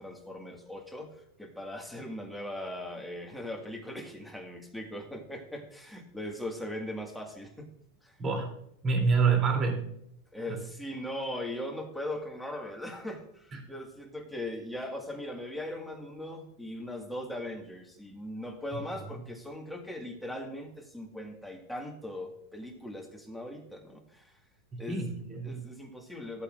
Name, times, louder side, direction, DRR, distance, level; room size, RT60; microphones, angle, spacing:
voice 1, 0.0-7.7 8.0-8.2 10.3-24.4 24.8-25.1 25.4-26.4, left 1 dB, ahead, 0 dB, 1.8 m, -39 dB
voice 2, 8.2-8.5 8.8-9.9 10.5-10.6 13.5-13.6 18.7-18.8 24.7-25.5, right 5 dB, 30° right, 0 dB, 3.0 m, -27 dB
14.5 x 8.2 x 2.5 m, 0.74 s
hypercardioid pair, 120°, 0 cm